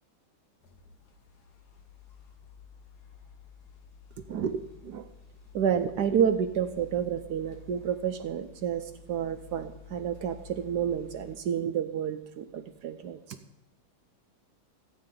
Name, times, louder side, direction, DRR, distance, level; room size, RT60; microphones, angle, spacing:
sound 1, 0.6-11.4, left 7 dB, 55° left, 1.7 m, -52 dB
voice 1, 4.3-5.1 5.5-13.2, right 8 dB, 70° right, 9 dB, 1.0 m, -30 dB
24.0 x 8.7 x 3.8 m, 0.85 s
omnidirectional pair, 2.3 m